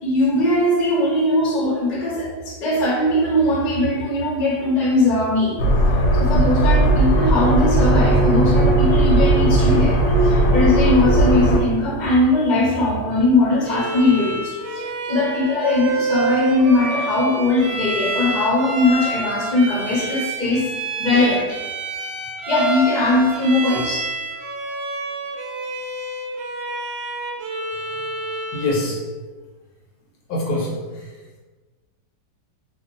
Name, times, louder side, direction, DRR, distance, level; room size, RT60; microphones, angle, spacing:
voice 1, 0.0-5.6 6.1-20.6 21.0-21.6 22.5-24.1, left 2 dB, 40° left, -5 dB, 0.6 m, -20 dB
sound 1, 5.6-11.6, right 1 dB, 85° left, 1.3 m, -16 dB
Bowed string instrument, 13.6-28.9, right 3 dB, 70° right, 0.9 m, -28 dB
voice 2, 28.5-29.0 30.3-31.1, left 2 dB, 70° left, -3 dB, 1.1 m, -24 dB
2.8 x 2.2 x 3.7 m, 1.3 s
omnidirectional pair, 1.9 m